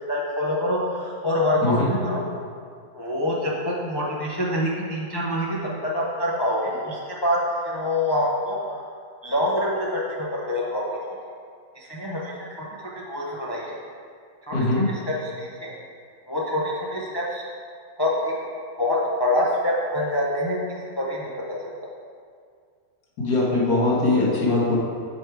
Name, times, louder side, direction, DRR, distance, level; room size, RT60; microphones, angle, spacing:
voice 1, 0.1-2.2 2.9-5.6 5.8-7.4 7.6-8.8 9.2-11.2 11.7-12.3 12.6-12.7 12.9-13.8 14.5-15.7 16.3-17.4 18.0-18.3 18.8-21.7, left 1 dB, 30° left, -4 dB, 0.4 m, -26 dB
voice 2, 14.5-14.9 23.2-24.8, left 2 dB, 80° left, -5 dB, 1.7 m, -21 dB
6.1 x 4.7 x 4.6 m, 2.1 s
omnidirectional pair, 1.5 m